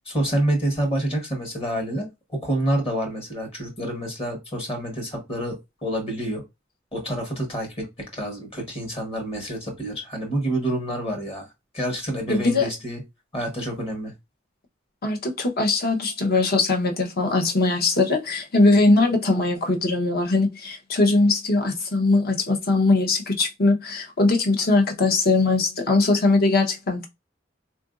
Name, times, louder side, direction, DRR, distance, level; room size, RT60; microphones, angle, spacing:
voice 1, 0.1-2.1 2.3-5.5 5.8-6.4 6.9-7.7 8.1-11.5 11.7-13.0 13.3-14.1, right 1 dB, 30° left, 1.1 m, -27 dB
voice 2, 12.3-12.7 15.0-27.1, left 2 dB, 55° left, 0.8 m, -21 dB
3.7 x 2.5 x 2.4 m
head